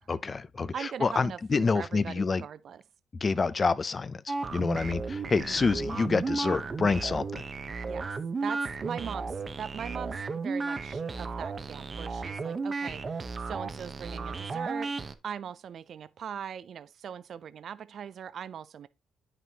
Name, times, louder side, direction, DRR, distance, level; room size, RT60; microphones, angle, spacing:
voice 1, 0.0-2.4 3.2-7.4, left 4 dB, 35° left, 0.4 m, -28 dB
voice 2, 0.7-2.8 5.4-5.6 7.9-8.1 8.4-18.9, right 8 dB, 60° right, 0.3 m, -40 dB
sound 1, 4.3-15.1, right 4 dB, 35° right, 0.7 m, -34 dB
9.2 x 5.8 x 2.8 m
cardioid pair, 90°, 0 cm